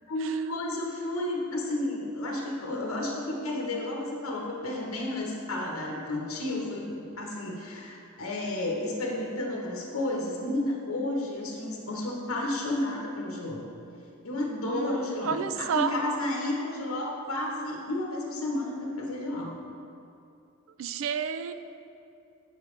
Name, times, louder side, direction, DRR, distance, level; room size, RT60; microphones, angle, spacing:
voice 1, 0.0-13.7 14.2-19.5, left 1 dB, 80° left, -1 dB, 1.1 m, -32 dB
voice 2, 14.6-15.9 20.8-21.5, right 7 dB, 65° right, 10 dB, 0.3 m, -31 dB
7.9 x 6.9 x 3.2 m, 2.7 s
head